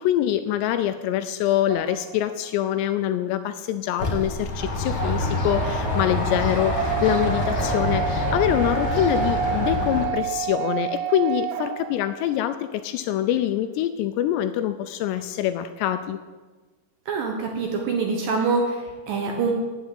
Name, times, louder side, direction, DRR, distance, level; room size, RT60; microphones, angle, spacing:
voice 1, 0.0-16.2, left 11 dB, 85° left, 10 dB, 2.5 m, -25 dB
sound 1, 1.7-2.5 4.9-12.4, right 11 dB, 90° right, 3.0 m, -30 dB
sound 2, 4.0-10.1, left 2 dB, 60° left, 1.0 m, -26 dB
voice 2, 17.1-19.5, right 4 dB, 70° right, 2 dB, 2.3 m, -25 dB
9.3 x 8.0 x 9.4 m, 1.3 s
omnidirectional pair, 5.2 m